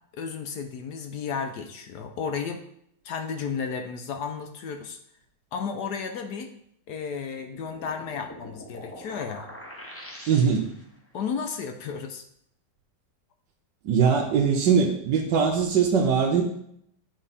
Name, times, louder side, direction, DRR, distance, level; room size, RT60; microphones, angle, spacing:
voice 1, 0.1-2.6 3.0-5.0 5.5-6.5 6.9-9.5 11.1-12.2, left 6 dB, 70° left, 6 dB, 1.1 m, -33 dB
sound 1, 7.4-11.0, left 1 dB, 20° left, 0.3 m, -44 dB
voice 2, 10.3-10.7 13.8-16.4, right 6 dB, 75° right, -1 dB, 1.4 m, -21 dB
9.0 x 4.2 x 4.1 m, 0.71 s
omnidirectional pair, 2.0 m